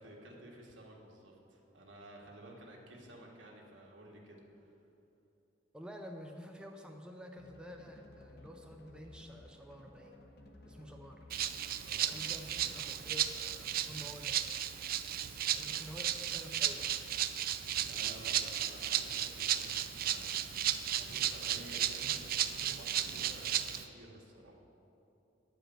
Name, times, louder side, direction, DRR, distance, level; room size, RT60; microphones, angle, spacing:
voice 1, 0.0-4.7 11.8-12.1 17.8-24.5, right 1 dB, 80° right, -1 dB, 1.7 m, -53 dB
voice 2, 5.7-10.2 10.6-11.3 12.1-14.4 15.5-16.9, equal, 5° right, 1 dB, 0.6 m, -49 dB
sound 1, 7.4-12.9, left 1 dB, 60° left, 1.0 m, -57 dB
Rattle (instrument), 11.3-23.8, right 10 dB, 50° right, 0.4 m, -34 dB
10.0 x 5.0 x 7.7 m, 2.9 s
head